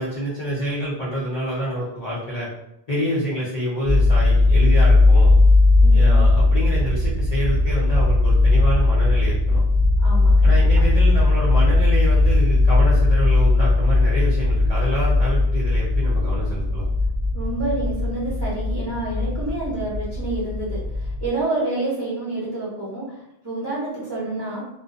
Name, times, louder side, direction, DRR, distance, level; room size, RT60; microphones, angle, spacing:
voice 1, 0.0-2.5 2.9-5.3 5.9-9.6 10.4-16.9, equal, 45° left, -8 dB, 0.6 m, -27 dB
sound 1, 3.9-21.3, left 2 dB, 65° right, 0.9 m, -18 dB
voice 2, 5.8-6.2 10.0-10.6 17.3-24.6, right 2 dB, 25° right, -8 dB, 0.8 m, -28 dB
2.4 x 2.2 x 2.4 m, 0.81 s
omnidirectional pair, 1.1 m